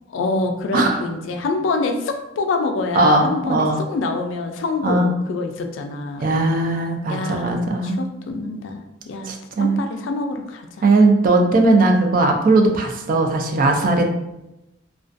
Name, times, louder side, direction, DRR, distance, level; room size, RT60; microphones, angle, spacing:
voice 1, 0.1-6.3 7.1-9.3 9.6-10.9, left 3 dB, 75° left, 5 dB, 0.3 m, -26 dB
voice 2, 2.9-3.8 4.8-5.1 6.2-8.0 9.3-9.8 10.8-14.1, right 2 dB, 45° right, 3 dB, 0.3 m, -18 dB
2.4 x 2.2 x 2.4 m, 0.91 s
head